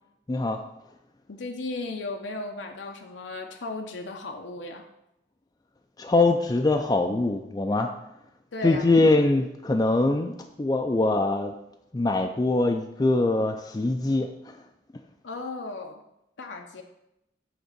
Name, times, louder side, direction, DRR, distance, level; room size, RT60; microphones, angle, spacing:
voice 1, 0.3-0.6 6.0-7.9 8.6-11.5 11.9-14.6, left 2 dB, 20° left, 4 dB, 0.3 m, -23 dB
voice 2, 1.3-4.9 8.5-8.9 15.2-16.0 16.4-16.8, left 2 dB, 90° left, 3 dB, 0.7 m, -35 dB
7.9 x 3.6 x 6.6 m, 0.86 s
head